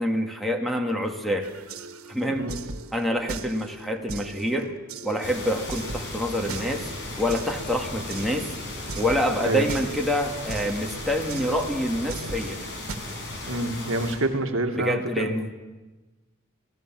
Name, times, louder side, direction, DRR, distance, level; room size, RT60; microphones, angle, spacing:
voice 1, 0.0-1.5 2.1-2.5 2.9-4.7 5.0-6.9 7.2-8.5 9.0-12.6 14.8-15.5, equal, ahead, 3 dB, 2.1 m, -26 dB
sound 1, 1.4-13.0, right 3 dB, 85° right, 1.6 m, -40 dB
sound 2, 5.2-14.2, left 2 dB, 60° left, 6.1 m, -36 dB
voice 2, 13.5-15.3, right 1 dB, 65° right, 5 dB, 1.9 m, -27 dB
27.0 x 18.0 x 7.5 m, 1.2 s
head